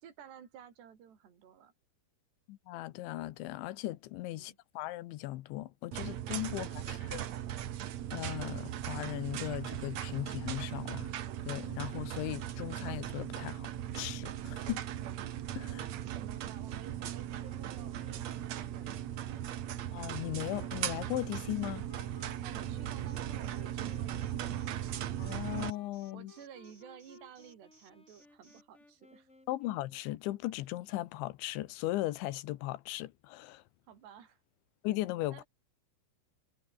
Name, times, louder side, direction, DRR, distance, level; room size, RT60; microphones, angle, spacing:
voice 1, 0.0-1.7 4.3-4.6 6.5-6.8 15.7-19.5 22.4-24.8 26.1-29.3 33.9-34.4 35.3-35.4, right 8 dB, 65° right, 5.8 m, -54 dB
voice 2, 2.5-7.2 8.1-11.1 11.5-13.7 14.0-14.9 15.6-15.9 19.9-21.9 25.2-26.3 29.5-33.6 34.8-35.4, left 16 dB, 85° left, 3.4 m, -38 dB
sound 1, 5.9-25.7, right 11 dB, 85° right, 1.5 m, -38 dB
sound 2, 17.4-30.0, left 2 dB, 15° left, 5.5 m, -59 dB
Alarm, 23.1-28.6, right 2 dB, 25° right, 8.7 m, -64 dB
omnidirectional pair, 5.2 m